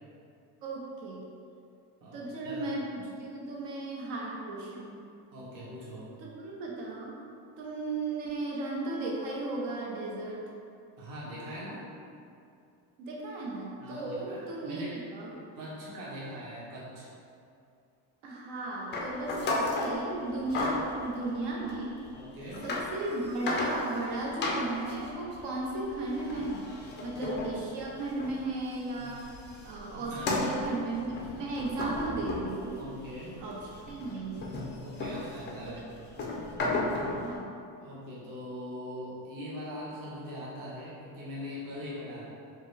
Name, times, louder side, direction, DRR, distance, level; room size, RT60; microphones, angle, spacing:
voice 1, 0.6-1.2 2.1-5.0 6.2-7.2 7.6-10.4 13.0-15.4 18.2-22.0 22.6-26.7 27.0-29.2 29.6-32.8 33.4-34.5 35.0-35.3 35.6-35.7 37.2-37.5, right 2 dB, 70° right, -3 dB, 0.9 m, -35 dB
voice 2, 2.0-2.6 5.3-6.1 11.0-11.9 13.8-14.9 15.3-17.1 22.1-22.7 29.0-29.1 29.9-30.5 31.3-31.4 32.8-33.4 34.8-35.8 37.8-42.2, equal, 45° right, -8 dB, 1.2 m, -42 dB
sound 1, 18.9-19.9 20.5-20.9 21.7-21.8 22.4-22.9 23.2-24.1 24.4-28.4 28.7-33.1 33.5-37.3, left 2 dB, 25° left, 0.3 m, -34 dB
4.9 x 2.2 x 3.5 m, 2.5 s
cardioid pair, 155°, 44 cm